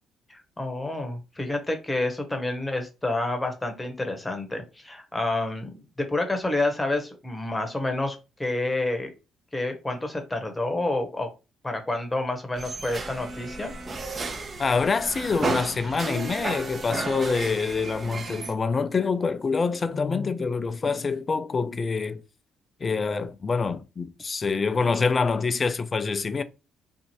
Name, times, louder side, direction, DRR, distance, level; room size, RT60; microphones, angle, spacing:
voice 1, 0.3-9.1 9.5-11.3 11.6-13.7 19.9-20.5, left 2 dB, 20° left, 0.9 m, -29 dB
sound 1, 12.6-18.5, right 3 dB, 40° right, 0.7 m, -33 dB
voice 2, 14.6-22.2 22.8-26.4, left 4 dB, 40° left, 0.3 m, -26 dB
2.7 x 2.4 x 2.9 m
hypercardioid pair, 50°, 0 cm